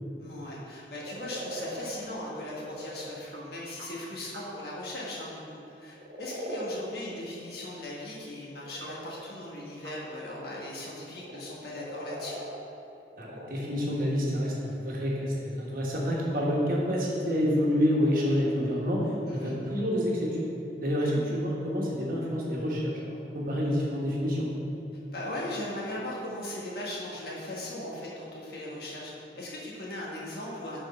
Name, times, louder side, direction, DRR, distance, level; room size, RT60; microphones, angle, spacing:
voice 1, 0.2-12.4 19.3-19.6 21.0-21.1 25.1-30.8, left 1 dB, 60° left, -5 dB, 1.4 m, -38 dB
sound 1, 0.9-3.9 4.3-4.5 5.9-6.8 7.2-9.4 9.8-10.6 10.9-12.6 13.0-13.7, right 1 dB, 80° right, 1.0 m, -41 dB
voice 2, 13.2-20.4 20.8-24.5, equal, 50° right, -4 dB, 1.3 m, -28 dB
6.4 x 4.4 x 5.5 m, 2.8 s
head